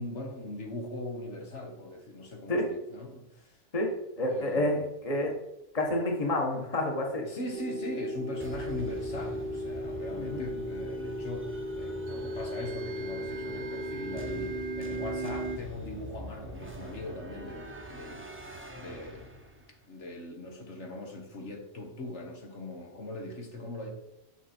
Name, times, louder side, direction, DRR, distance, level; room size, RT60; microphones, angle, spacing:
voice 1, 0.0-3.6 4.3-4.9 7.3-18.2 18.7-19.3 19.9-23.9, left 1 dB, 70° left, 2 dB, 1.8 m, -40 dB
voice 2, 4.2-5.3 5.7-7.3 10.1-10.5, left 1 dB, 30° left, 1 dB, 1.5 m, -29 dB
sound 1, 7.5-15.6, equal, 55° right, 0.6 m, -36 dB
sound 2, 8.4-19.8, right 1 dB, 10° right, 0.7 m, -44 dB
8.0 x 6.3 x 4.4 m, 0.90 s
omnidirectional pair, 1.2 m